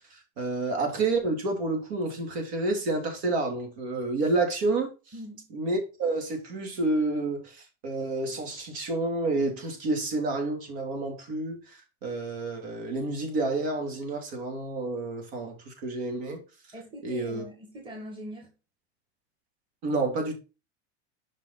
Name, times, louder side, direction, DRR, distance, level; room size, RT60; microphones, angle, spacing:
voice 1, 0.1-4.9 5.5-16.4 17.0-17.4 19.8-20.4, right 2 dB, 65° right, 3.1 m, -29 dB
voice 2, 5.1-5.5 16.7-18.5, right 1 dB, 15° right, 1.9 m, -42 dB
6.9 x 5.3 x 4.0 m
supercardioid pair, 165°, 35 cm